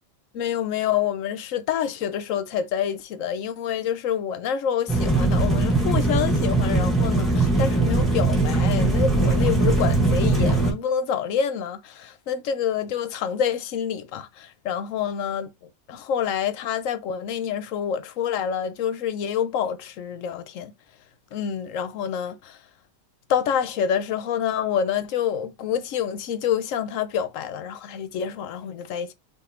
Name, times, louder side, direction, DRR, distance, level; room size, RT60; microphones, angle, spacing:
voice 1, 0.3-15.5 15.9-20.7 21.3-22.6 23.3-29.1, left 8 dB, 70° left, 1.0 m, -27 dB
sound 1, 4.9-10.7, right 2 dB, ahead, 1.8 m, -20 dB
5.6 x 3.4 x 2.5 m
omnidirectional pair, 1.5 m